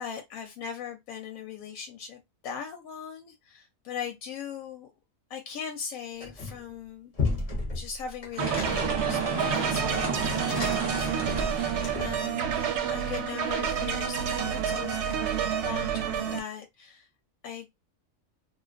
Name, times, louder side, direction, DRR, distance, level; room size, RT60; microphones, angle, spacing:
voice 1, 0.0-4.9 5.3-7.1 7.7-17.1 17.4-17.7, left 7 dB, 90° left, 1.0 m, -40 dB
sound 1, 6.2-6.7 7.1-12.3, left 3 dB, 40° left, 0.5 m, -34 dB
sound 2, 8.4-12.3, right 3 dB, 30° right, 0.5 m, -32 dB
sound 3, 8.4-16.4, right 8 dB, 65° right, 0.8 m, -29 dB
2.3 x 2.3 x 2.4 m
omnidirectional pair, 1.4 m